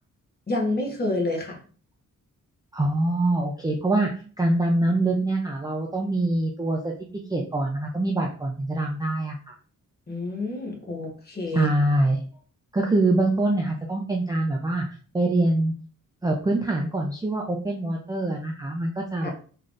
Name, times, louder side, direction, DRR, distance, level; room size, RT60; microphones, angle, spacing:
voice 1, 0.5-1.6 10.1-11.7 19.2-19.3, left 2 dB, 30° left, -1 dB, 1.2 m, -28 dB
voice 2, 2.7-6.9 7.3-9.5 11.5-12.2 12.7-14.9 15.1-15.7 16.2-19.3, right 2 dB, 10° right, 0 dB, 0.5 m, -24 dB
3.7 x 3.2 x 2.5 m, 0.41 s
wide cardioid pair, 105°, 32 cm